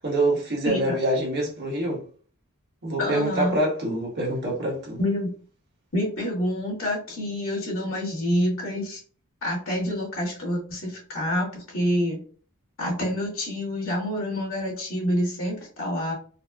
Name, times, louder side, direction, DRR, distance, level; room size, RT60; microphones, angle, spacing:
voice 1, 0.0-2.0 2.8-5.0, right 1 dB, 50° right, -2 dB, 1.2 m, -25 dB
voice 2, 0.6-1.0 3.0-3.6 5.0-5.3 5.9-9.0 9.4-12.2 12.8-16.1, equal, 65° left, -2 dB, 1.5 m, -27 dB
4.0 x 2.0 x 2.3 m, 0.42 s
head